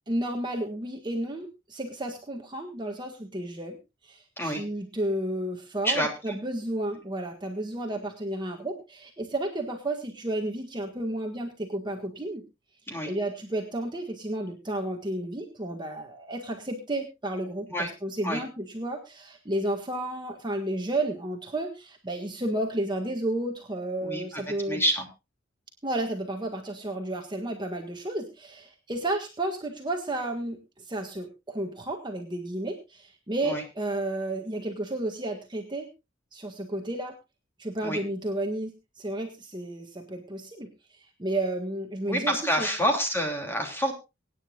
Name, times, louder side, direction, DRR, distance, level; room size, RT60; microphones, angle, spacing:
voice 1, 0.1-3.8 4.0-12.4 13.0-24.8 25.8-30.6 30.9-35.9 36.3-37.2 37.6-40.7 41.2-42.7, right 1 dB, 25° right, 2 dB, 1.6 m, -32 dB
voice 2, 5.8-6.4 12.9-13.1 17.7-17.9 18.2-18.4 24.0-24.4 24.7-25.1 33.4-33.6 37.8-38.0 42.1-43.9, equal, 10° left, 2 dB, 3.1 m, -28 dB
24.5 x 9.8 x 2.4 m, 0.27 s
head